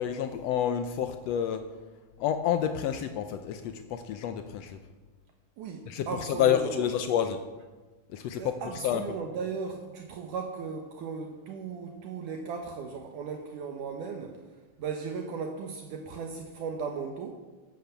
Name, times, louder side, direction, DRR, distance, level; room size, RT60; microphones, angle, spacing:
voice 1, 0.0-1.6 2.2-4.8 5.9-7.4 8.1-8.5 8.8-9.0, left 9 dB, 85° left, 8 dB, 1.4 m, -29 dB
voice 2, 5.6-6.8 8.4-14.4 14.8-17.3, right 5 dB, 70° right, 3 dB, 2.6 m, -36 dB
13.0 x 11.5 x 8.2 m, 1.3 s
omnidirectional pair, 3.9 m